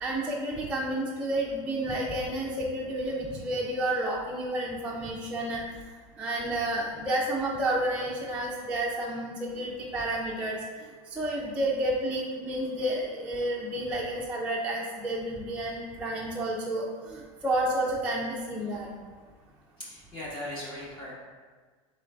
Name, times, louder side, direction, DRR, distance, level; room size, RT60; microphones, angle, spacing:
voice 1, 0.0-5.6 6.2-10.6 11.2-16.9 17.1-18.9, right 1 dB, 5° right, -4 dB, 0.4 m, -30 dB
voice 2, 19.8-21.1, left 1 dB, 30° left, -6 dB, 0.9 m, -38 dB
3.7 x 3.1 x 3.3 m, 1.4 s
supercardioid pair, 140°, 18 cm